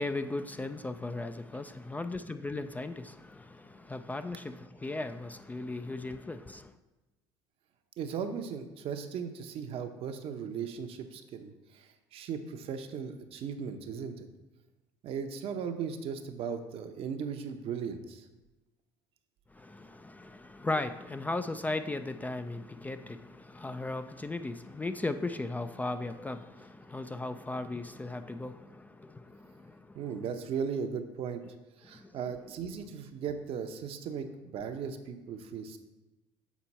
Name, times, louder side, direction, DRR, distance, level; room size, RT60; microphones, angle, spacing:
voice 1, 0.0-6.7 19.5-30.1 31.9-32.1, left 2 dB, 15° left, 10 dB, 0.3 m, -37 dB
voice 2, 8.0-14.3 15.0-18.3 29.9-31.4 31.8-35.8, right 6 dB, 55° right, 7 dB, 0.7 m, -37 dB
7.3 x 4.4 x 4.1 m, 1.1 s
hypercardioid pair, 70°, 12 cm